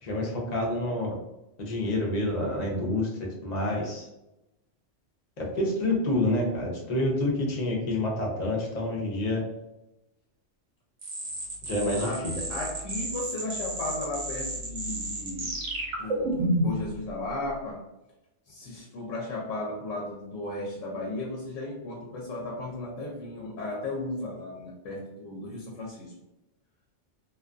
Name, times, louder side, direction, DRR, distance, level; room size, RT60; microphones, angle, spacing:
voice 1, 0.0-1.2 1.6-3.1 3.4-4.1 5.4-9.4 11.7-12.4, left 1 dB, 45° left, -2 dB, 0.6 m, -28 dB
sound 1, 11.0-16.9, right 1 dB, 75° right, 1.0 m, -31 dB
voice 2, 12.0-15.6 16.0-17.8 18.5-26.1, left 2 dB, 85° left, -2 dB, 1.0 m, -35 dB
2.5 x 2.3 x 2.4 m, 0.95 s
omnidirectional pair, 1.3 m